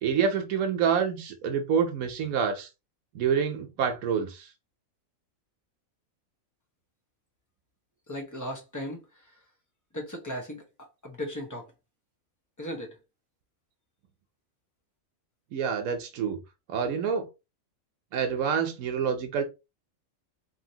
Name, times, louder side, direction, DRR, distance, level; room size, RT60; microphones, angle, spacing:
voice 1, 0.0-2.7 3.1-4.5 15.5-16.4 16.7-17.3 18.1-19.4, right 7 dB, 90° right, 1.1 m, -27 dB
voice 2, 8.1-9.0 9.9-11.7 12.6-13.0, equal, 15° left, 0.7 m, -37 dB
3.2 x 2.7 x 2.7 m
omnidirectional pair, 1.4 m